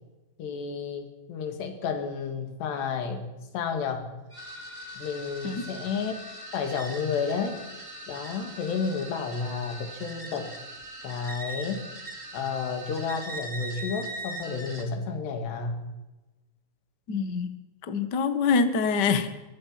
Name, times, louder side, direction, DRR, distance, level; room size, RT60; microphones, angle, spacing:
voice 1, 0.4-4.1 5.0-6.2 6.5-7.6 8.1-10.5 11.0-11.8 12.3-15.8, left 5 dB, 85° left, 6 dB, 4.7 m, -31 dB
sound 1, 4.3-14.8, right 1 dB, 10° right, 2.8 m, -41 dB
voice 2, 17.1-17.5 17.9-19.3, left 5 dB, 50° left, 9 dB, 1.2 m, -25 dB
23.0 x 22.5 x 6.0 m, 1.1 s
omnidirectional pair, 4.7 m